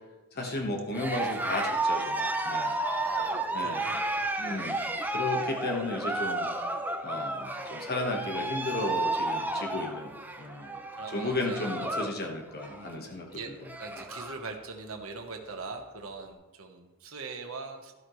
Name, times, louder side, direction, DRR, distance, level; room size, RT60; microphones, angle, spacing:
voice 1, 0.3-2.7 3.5-3.8 4.4-4.8 5.1-6.5 7.0-10.1 10.4-10.7 11.1-13.5 14.0-14.1, left 2 dB, 45° left, 1 dB, 1.4 m, -34 dB
Cheering, 0.9-12.2 12.5-12.9 13.3-13.4 13.6-14.4, right 2 dB, 10° right, 0.7 m, -32 dB
voice 2, 2.9-4.7 7.1-7.4 10.9-11.7 12.7-17.9, right 4 dB, 65° right, 3 dB, 1.2 m, -42 dB
13.0 x 12.5 x 3.2 m, 1.2 s
head